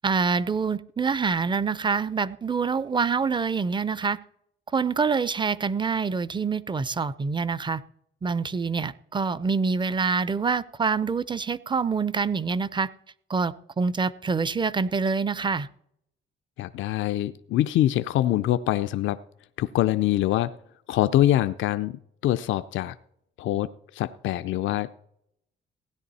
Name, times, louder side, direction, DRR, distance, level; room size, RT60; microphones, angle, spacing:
voice 1, 0.0-4.2 4.7-7.8 8.2-12.9 13.3-15.7, right 5 dB, 25° right, 18 dB, 0.6 m, -26 dB
voice 2, 16.6-19.2 19.6-20.5 20.9-23.0 23.4-24.9, left 13 dB, 75° left, 11 dB, 0.5 m, -24 dB
16.5 x 10.0 x 4.2 m, 0.73 s
cardioid pair, 90°, 20 cm